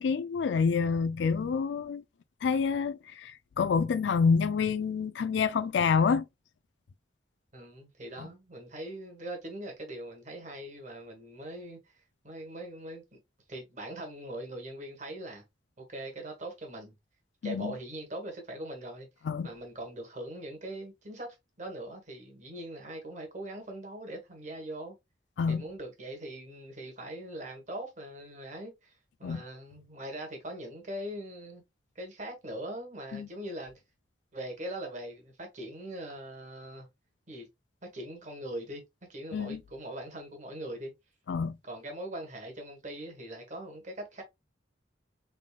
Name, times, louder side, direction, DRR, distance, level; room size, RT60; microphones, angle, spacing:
voice 1, 0.0-2.0 2.4-6.3 8.2-8.3 17.4-17.7 19.2-19.5 25.4-25.6 29.2-29.4 33.1-33.3 39.3-39.6 41.3-41.6, left 5 dB, 70° left, 0.4 m, -27 dB
voice 2, 7.5-11.9 12.2-13.2 13.5-15.4 15.8-16.9 17.4-19.1 19.4-24.9 25.5-31.6 31.9-33.7 34.3-36.9 37.3-37.5 37.8-38.8 39.1-40.9 41.6-44.2, right 1 dB, 40° right, 1.3 m, -41 dB
3.7 x 3.6 x 2.3 m
head